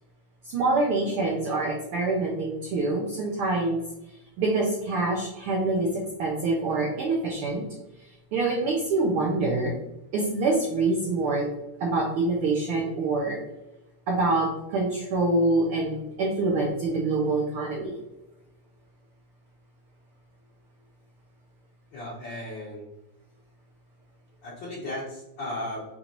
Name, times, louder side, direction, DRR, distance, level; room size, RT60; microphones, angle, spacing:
voice 1, 0.4-3.8 4.4-7.6 8.3-9.7 10.1-11.5 11.8-13.4 14.1-18.0, right 2 dB, 85° right, -1 dB, 1.2 m, -25 dB
voice 2, 21.9-22.9 24.4-25.9, left 1 dB, 60° left, -5 dB, 1.3 m, -35 dB
6.7 x 2.5 x 3.0 m, 0.94 s
omnidirectional pair, 3.4 m